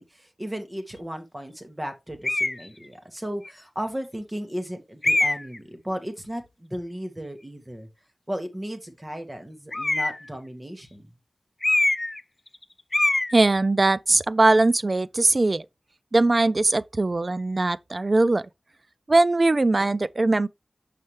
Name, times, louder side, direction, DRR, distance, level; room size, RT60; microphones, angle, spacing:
voice 1, 0.0-7.9 8.3-11.1, equal, 20° right, 1.5 m, -35 dB
sound 1, 2.2-2.6 3.4-3.5 5.0-5.6 9.7-10.3 11.6-12.2 12.5-12.6 12.9-13.3, left 2 dB, 35° left, 0.4 m, -23 dB
voice 2, 13.3-15.7 16.1-18.5 19.1-20.5, right 2 dB, 45° right, 0.4 m, -20 dB
6.4 x 5.8 x 3.2 m
wide cardioid pair, 80°, 0 cm